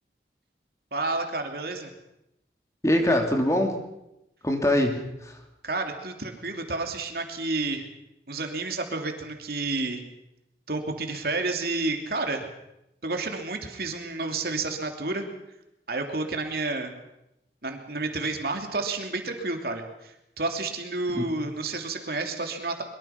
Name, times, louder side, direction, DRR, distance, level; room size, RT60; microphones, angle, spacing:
voice 1, 0.9-1.9 5.6-7.9 8.3-10.0 10.7-12.5 13.0-15.3 15.9-16.9 17.6-22.8, right 3 dB, 60° right, 4 dB, 2.9 m, -30 dB
voice 2, 2.8-3.8 4.4-5.4 21.1-21.3, left 1 dB, 15° left, 3 dB, 2.9 m, -23 dB
23.5 x 23.0 x 5.9 m, 0.86 s
head